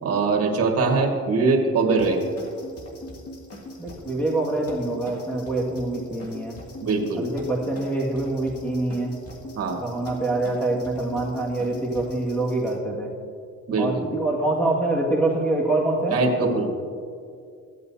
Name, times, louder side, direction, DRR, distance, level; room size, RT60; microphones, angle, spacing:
voice 1, 0.0-2.2 6.8-7.3 9.6-9.8 13.7-14.1 16.1-16.7, right 3 dB, 55° right, 1 dB, 1.7 m, -22 dB
sound 1, 2.0-12.7, left 1 dB, 50° left, 2.1 m, -41 dB
voice 2, 3.8-6.6 7.2-9.1 9.8-13.1 13.8-16.2, right 2 dB, 5° left, -4 dB, 1.8 m, -25 dB
15.0 x 8.7 x 2.7 m, 2.3 s
cardioid pair, 90°, 30 cm